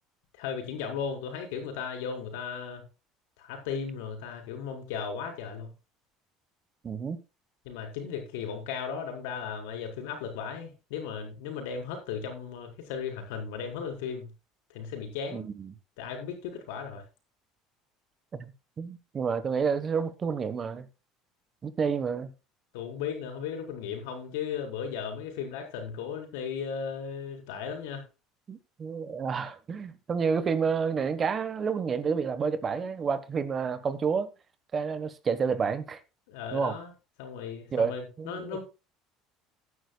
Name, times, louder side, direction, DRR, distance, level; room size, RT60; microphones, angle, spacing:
voice 1, 0.3-2.8 3.4-5.7 7.6-14.3 14.7-15.5 16.0-17.0 22.7-28.1 36.3-36.9 37.2-38.6, left 6 dB, 90° left, 4.3 m, -36 dB
voice 2, 6.8-7.2 15.3-15.7 18.4-18.5 18.8-20.9 21.6-22.3 28.5-34.3 34.7-36.0 36.5-36.8 37.7-37.9 38.2-38.6, right 6 dB, 30° right, 1.2 m, -29 dB
16.5 x 9.7 x 2.3 m
cardioid pair, 130°, 0 cm